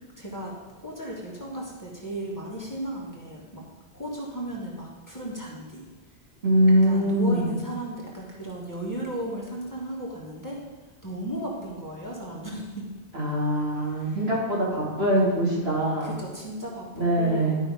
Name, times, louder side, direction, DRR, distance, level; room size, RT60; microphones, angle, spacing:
voice 1, 0.2-3.6 3.9-5.8 6.8-10.5 11.0-12.8 13.9-14.2 16.0-17.7, right 1 dB, 15° left, -5 dB, 1.7 m, -35 dB
voice 2, 6.4-7.6 13.1-16.1 16.9-17.6, right 1 dB, 65° right, -5 dB, 2.6 m, -23 dB
12.0 x 5.5 x 4.9 m, 1.3 s
omnidirectional pair, 1.1 m